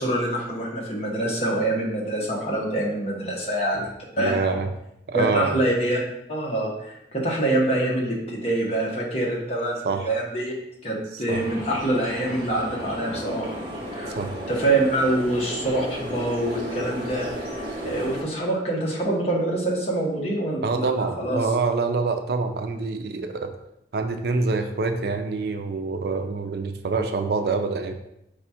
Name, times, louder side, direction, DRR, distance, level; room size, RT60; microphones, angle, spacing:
voice 1, 0.0-4.3 5.1-6.0 6.3-10.5 10.8-13.5 13.9-14.2 14.5-21.4, right 1 dB, 35° left, -3 dB, 1.0 m, -25 dB
voice 2, 4.2-4.7 5.1-5.5 9.8-10.1 11.1-11.4 14.2-14.3 20.6-23.5 23.9-27.9, right 4 dB, 60° right, 6 dB, 0.4 m, -26 dB
sound 1, 11.3-18.2, equal, 25° right, 1.1 m, -34 dB
4.9 x 2.4 x 4.1 m, 0.81 s
head